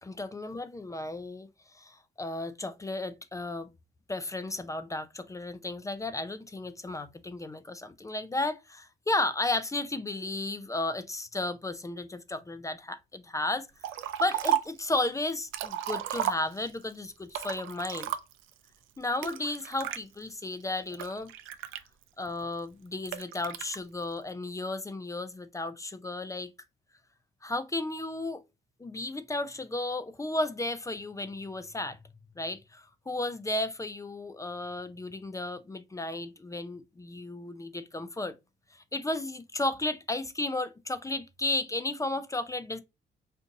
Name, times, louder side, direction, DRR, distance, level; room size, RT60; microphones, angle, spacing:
voice 1, 0.0-3.7 4.1-13.7 14.2-18.1 19.0-21.3 22.2-26.5 27.4-28.4 28.8-32.0 32.4-38.3 38.7-42.8, left 2 dB, 15° left, 0.4 m, -34 dB
Liquid, 13.8-14.8 15.3-16.8 17.3-18.5 19.2-20.0 20.6-22.3 23.1-23.8, right 11 dB, 90° right, 0.4 m, -33 dB
3.8 x 2.6 x 2.6 m
cardioid pair, 90°, 20 cm